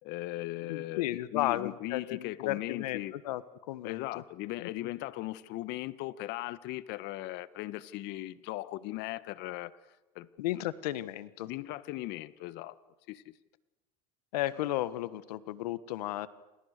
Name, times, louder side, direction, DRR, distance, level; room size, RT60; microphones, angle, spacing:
voice 1, 0.0-3.1 3.8-9.7 10.1-10.3 10.5-10.6 11.4-12.8 13.1-13.3, left 17 dB, 60° left, 16 dB, 1.5 m, -38 dB
voice 2, 0.7-3.4 3.7-4.2 4.6-4.9 10.4-11.5 14.3-16.3, left 15 dB, 85° left, 16 dB, 1.5 m, -34 dB
28.0 x 27.5 x 6.8 m, 1.0 s
supercardioid pair, 105°, 20 cm